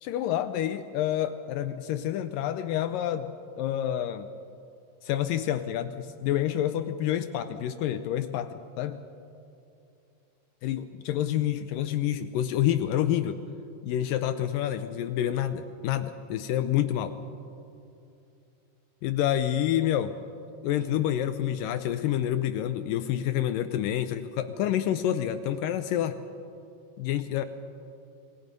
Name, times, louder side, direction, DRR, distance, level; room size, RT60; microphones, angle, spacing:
voice 1, 0.0-4.3 5.0-9.0 10.6-13.4 13.8-17.1 19.0-20.2 20.6-26.2 27.0-27.4, left 11 dB, 85° left, 10 dB, 1.9 m, -28 dB
27.0 x 21.0 x 5.3 m, 2.6 s
omnidirectional pair, 4.6 m